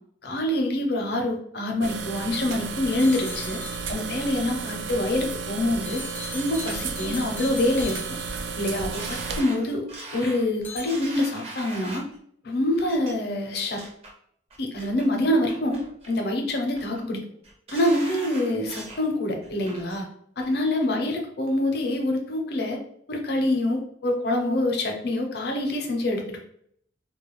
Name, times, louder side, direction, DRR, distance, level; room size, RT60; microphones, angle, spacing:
voice 1, 0.2-3.6 3.9-6.0 6.3-8.2 8.6-9.9 10.1-12.0 12.4-13.8 14.6-15.8 16.1-17.2 17.7-20.1 20.4-22.8 23.1-26.4, left 1 dB, 60° left, 2 dB, 0.6 m, -25 dB
sound 1, 1.8-9.4, right 5 dB, 80° right, 0.3 m, -33 dB
sound 2, 2.9-4.2 5.9-8.8 10.6-10.9, left 4 dB, 10° left, 0.3 m, -40 dB
sound 3, 8.9-12.2 12.8-13.1 13.5-14.1 14.5-15.1 15.5-16.1 16.5-17.0 17.4-19.0 19.4-20.0 20.4-20.5, right 2 dB, 35° right, 0.6 m, -41 dB
2.3 x 2.2 x 3.0 m, 0.65 s
head